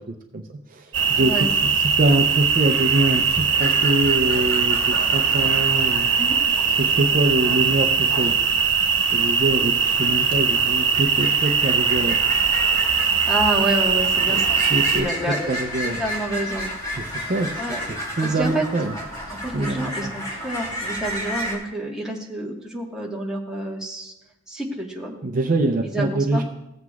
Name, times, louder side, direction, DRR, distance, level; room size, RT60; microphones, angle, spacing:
voice 1, 0.0-1.3 2.0-6.1 6.8-8.4 9.1-12.2 14.3-14.4 14.7-15.1 15.5-16.0 17.0-17.6 18.2-18.9 19.5-20.1 25.2-26.4, right 2 dB, 45° right, 4 dB, 0.6 m, -24 dB
sound 1, 0.9-15.0, right 6 dB, 70° right, 1.2 m, -20 dB
voice 2, 1.2-1.5 6.2-6.4 13.3-14.6 14.9-15.5 15.8-16.7 17.6-17.8 18.2-18.6 19.3-24.1 24.5-25.1 25.8-26.4, right 1 dB, 5° right, -3 dB, 1.4 m, -28 dB
sound 2, 3.5-21.6, equal, 20° left, 2.3 m, -34 dB
15.5 x 7.9 x 2.3 m, 0.85 s
head